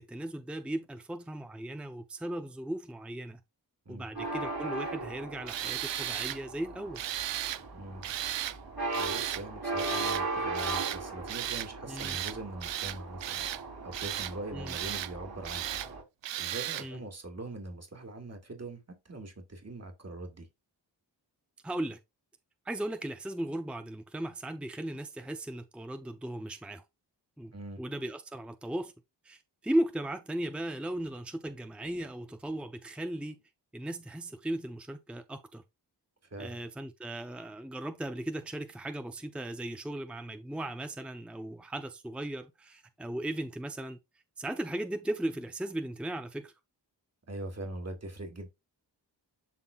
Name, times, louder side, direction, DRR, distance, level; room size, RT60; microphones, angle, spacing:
voice 1, 0.0-3.4 3.9-7.0 11.9-12.2 14.5-14.7 16.8-17.0 21.6-22.0 22.7-26.8 27.4-27.5 27.8-28.9 29.2-33.4 33.7-35.6 36.4-44.0 44.4-46.5, right 1 dB, 5° right, 0.7 m, -37 dB
sound 1, 4.1-16.0, right 2 dB, 60° right, 3.4 m, -38 dB
Tools, 5.5-6.4 6.9-7.6 8.0-8.6 8.9-9.4 9.8-10.2 10.5-11.0 11.3-11.7 12.0-12.4 12.6-13.6 13.9-14.3 14.7-15.1 15.4-15.9 16.2-16.9, right 12 dB, 85° right, 0.5 m, -35 dB
voice 2, 7.7-8.0 8.9-13.5 13.8-15.8 16.4-20.5 27.5-27.8 36.3-36.6 47.3-48.5, right 2 dB, 35° right, 2.1 m, -42 dB
11.5 x 3.8 x 2.4 m
cardioid pair, 60°, 43 cm